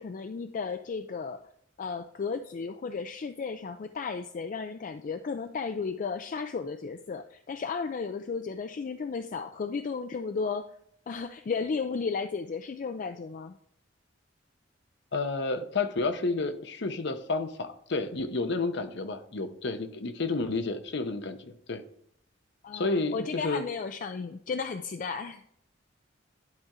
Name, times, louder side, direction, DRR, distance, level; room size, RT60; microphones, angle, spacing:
voice 1, 0.0-1.4 1.8-10.7 11.1-13.6 22.6-25.4, left 5 dB, 45° left, 8 dB, 0.4 m, -34 dB
voice 2, 15.1-21.8 22.7-23.6, left 3 dB, 65° left, 9 dB, 0.8 m, -31 dB
10.5 x 4.3 x 3.7 m, 0.69 s
head